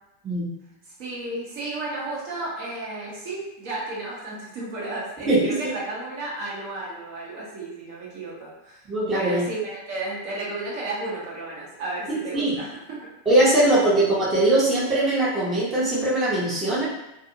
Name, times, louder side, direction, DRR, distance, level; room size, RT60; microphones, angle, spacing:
voice 1, 1.0-8.8 9.1-12.7 13.5-13.7, right 2 dB, 50° right, -6 dB, 0.9 m, -33 dB
voice 2, 5.3-5.6 8.9-9.4 12.1-12.6 13.3-16.9, right 1 dB, 20° right, -7 dB, 0.9 m, -21 dB
2.6 x 2.4 x 2.8 m, 0.90 s
figure-of-eight pair, 90°, 0 cm